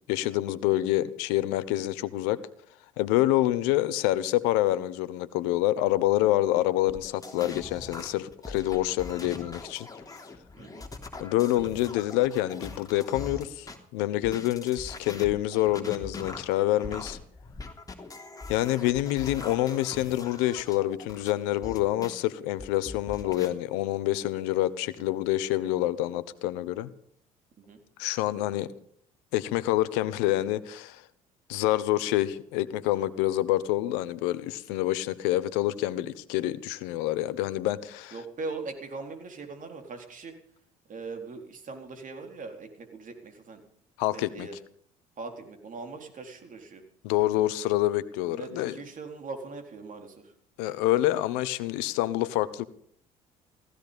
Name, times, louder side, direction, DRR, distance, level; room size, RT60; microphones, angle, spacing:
voice 1, 0.1-2.4 3.0-9.9 11.2-17.2 18.5-26.9 28.0-28.7 29.3-31.0 31.5-38.1 44.0-44.5 47.0-48.7 50.6-52.7, left 15 dB, 75° left, 16 dB, 1.1 m, -27 dB
sound 1, 6.9-13.8 14.2-22.1 22.6-23.5, left 3 dB, 20° left, 3.3 m, -42 dB
voice 2, 10.6-10.9 27.6-27.8 38.1-40.3 40.9-43.6 44.1-44.6 45.2-46.8 48.2-50.3, right 4 dB, 45° right, 5 dB, 4.2 m, -40 dB
16.0 x 15.5 x 5.3 m, 0.63 s
hypercardioid pair, 60°, 18 cm